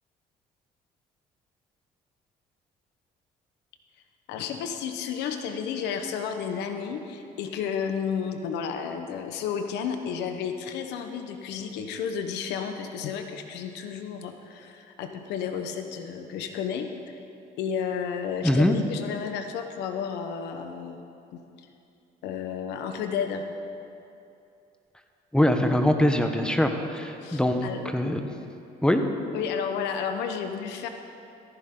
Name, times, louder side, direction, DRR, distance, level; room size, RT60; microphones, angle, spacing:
voice 1, 4.3-17.2 17.6-21.1 21.3-21.4 22.2-23.4 27.2-27.8 29.3-30.9, left 7 dB, 85° left, 6 dB, 1.2 m, -32 dB
voice 2, 18.4-18.8 25.3-28.3 28.8-29.0, left 1 dB, 5° left, 5 dB, 1.0 m, -23 dB
15.0 x 14.0 x 3.9 m, 2.7 s
cardioid pair, 110°, 17 cm